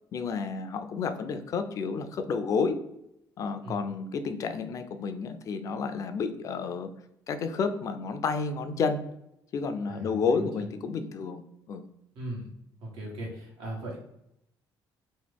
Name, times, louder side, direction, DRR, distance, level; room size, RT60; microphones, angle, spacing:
voice 1, 0.1-2.8 3.4-6.9 7.3-9.0 9.5-11.9, left 5 dB, 45° left, 8 dB, 0.3 m, -30 dB
voice 2, 9.9-10.7 12.1-12.5 12.8-14.0, right 1 dB, 85° right, -3 dB, 1.4 m, -38 dB
3.0 x 2.2 x 3.3 m, 0.80 s
cardioid pair, 140°, 8 cm